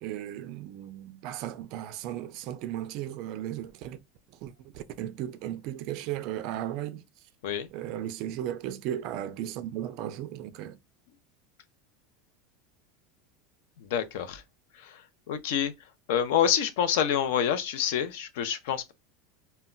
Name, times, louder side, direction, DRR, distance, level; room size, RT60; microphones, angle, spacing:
voice 1, 0.0-4.0 4.4-7.0 7.7-10.8, right 12 dB, 40° right, 0.3 m, -36 dB
voice 2, 13.8-14.4 14.8-15.0 15.3-15.7 16.1-18.9, left 9 dB, 60° left, 0.5 m, -27 dB
2.2 x 2.1 x 3.7 m
supercardioid pair, 175°, 0 cm